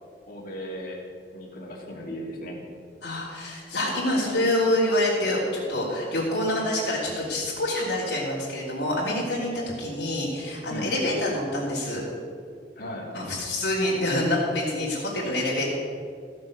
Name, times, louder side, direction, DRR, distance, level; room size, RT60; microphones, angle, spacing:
voice 1, 0.3-1.0 1.3-2.6 10.7-10.9 12.8-13.1, equal, 55° left, -2 dB, 2.9 m, -36 dB
voice 2, 3.0-12.0 13.1-15.7, left 1 dB, 70° left, -7 dB, 3.4 m, -26 dB
16.0 x 7.8 x 6.7 m, 2.2 s
head